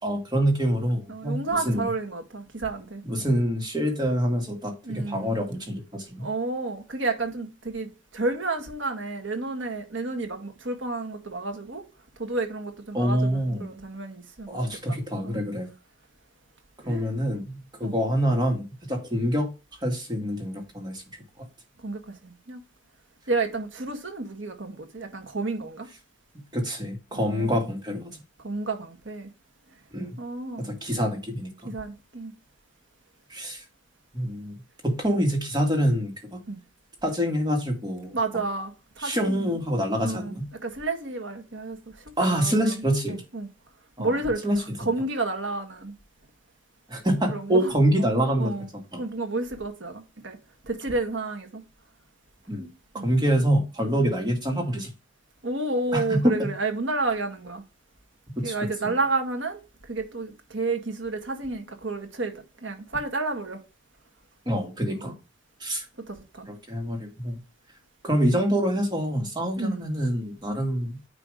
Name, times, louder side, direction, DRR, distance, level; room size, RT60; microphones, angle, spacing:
voice 1, 0.0-1.4 1.7-1.8 3.0-6.3 12.9-13.7 14.5-15.7 16.8-19.5 19.8-21.0 26.5-28.2 29.9-30.2 30.6-31.7 33.3-33.6 34.1-34.5 34.8-36.4 37.0-38.1 39.0-40.5 42.2-43.2 44.0-44.1 44.4-44.6 46.9-48.5 48.9-49.0 52.5-52.7 52.9-54.9 55.9-56.5 58.4-58.5 58.8-58.9 64.5-65.1 65.6-65.8 66.5-67.4 68.0-71.0, equal, 20° right, 2.0 m, -26 dB
voice 2, 1.1-3.0 4.8-5.4 6.2-11.8 12.2-14.6 14.9-15.0 15.2-15.4 16.8-17.1 17.8-18.0 21.8-22.6 23.3-25.9 27.1-27.6 28.4-29.3 30.2-30.7 31.7-32.3 36.5-36.6 38.1-39.6 40.0-43.5 44.0-44.4 44.9-46.0 47.3-48.1 48.4-48.7 49.0-50.4 50.6-51.6 52.9-53.1 55.4-57.6 58.4-63.6 64.9-65.1 66.0-66.5 69.6-69.9, right 3 dB, 65° right, 1.8 m, -31 dB
9.8 x 3.3 x 5.1 m
head